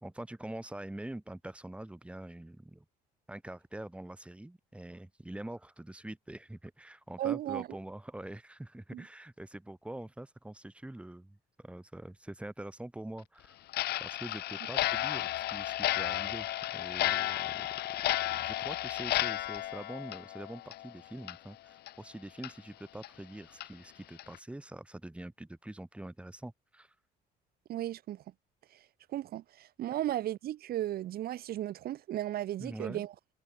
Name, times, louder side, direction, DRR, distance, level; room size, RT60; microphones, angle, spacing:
voice 1, 0.0-2.8 3.3-13.7 14.0-17.7 18.3-26.9 32.6-33.1, right 1 dB, 5° right, 3.6 m, -45 dB
voice 2, 7.2-7.7 8.9-9.0 27.7-28.2 29.1-33.1, right 13 dB, 65° right, 1.6 m, -35 dB
Clock, 13.7-20.9 21.2-21.4 21.9-22.0 22.4-22.5 23.0-23.1 23.6-23.7 24.2-24.4, left 15 dB, 75° left, 2.3 m, -33 dB
cardioid pair, 110°, 17 cm